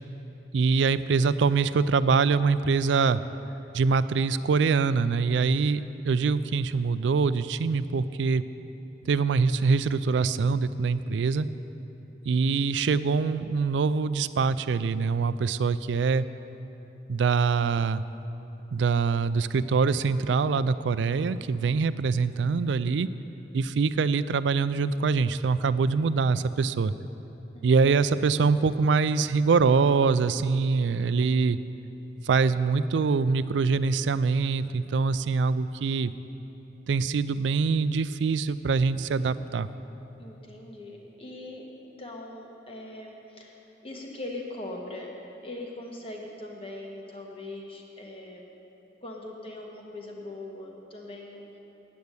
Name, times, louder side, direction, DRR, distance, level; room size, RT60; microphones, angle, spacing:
voice 1, 0.5-3.2 3.7-8.4 9.1-11.5 12.3-16.3 17.1-18.0 18.7-23.1 23.5-26.9 27.6-31.6 32.2-36.1 36.9-39.7, right 4 dB, 85° right, 14 dB, 0.4 m, -24 dB
voice 2, 40.2-43.6 43.8-45.1 45.4-48.4 49.0-51.4, left 2 dB, 30° left, 0 dB, 1.3 m, -41 dB
9.3 x 8.7 x 8.2 m, 3.0 s
head